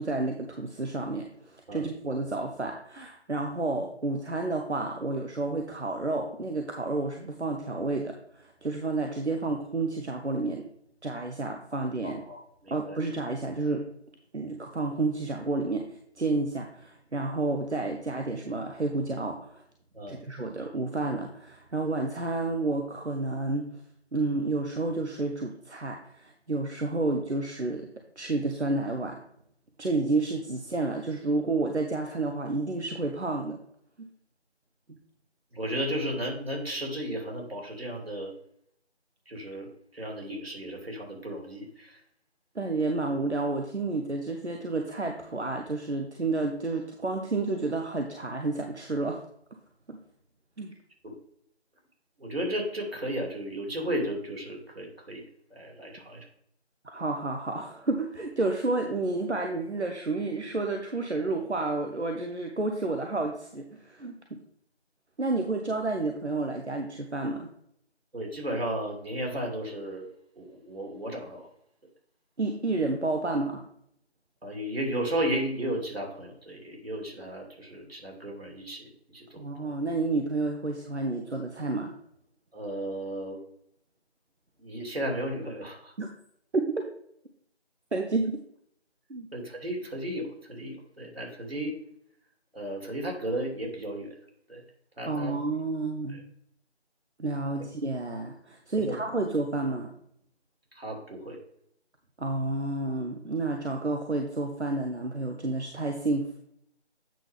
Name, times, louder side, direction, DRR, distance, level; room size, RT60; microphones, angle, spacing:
voice 1, 0.0-10.6 11.0-12.2 12.7-13.9 14.3-19.6 20.1-23.7 24.1-27.9 28.2-29.2 29.8-33.6 42.5-49.2 49.9-50.0 50.6-50.7 56.8-64.1 65.2-67.5 72.4-73.6 79.4-81.9 86.0-86.1 86.5-86.8 87.9-88.4 89.1-89.3 95.1-96.2 97.2-99.9 102.2-106.4, right 2 dB, 85° right, 3 dB, 1.2 m, -30 dB
voice 2, 12.0-13.0 19.9-20.2 35.5-38.3 39.3-42.0 51.0-51.2 52.2-55.2 55.5-56.2 68.1-70.1 70.4-71.5 74.4-79.7 82.5-83.4 84.6-85.9 89.3-91.8 92.5-94.1 94.5-94.6 95.0-95.3 96.1-96.2 98.8-98.9 100.7-101.4, right 1 dB, 60° right, 0 dB, 2.9 m, -34 dB
9.1 x 5.9 x 3.5 m, 0.69 s
figure-of-eight pair, 170°, 33 cm